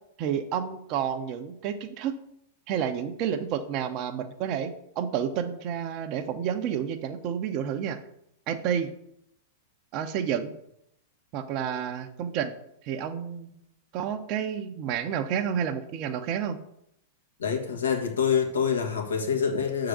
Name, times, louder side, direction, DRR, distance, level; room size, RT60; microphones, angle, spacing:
voice 1, 0.2-2.2 2.7-8.0 8.5-8.9 9.9-10.5 11.3-12.5 12.8-13.5 13.9-16.6, right 8 dB, 45° right, 8 dB, 0.8 m, -30 dB
voice 2, 17.4-19.9, left 7 dB, 80° left, 1 dB, 1.6 m, -26 dB
6.7 x 3.9 x 6.3 m, 0.75 s
hypercardioid pair, 100°, 0 cm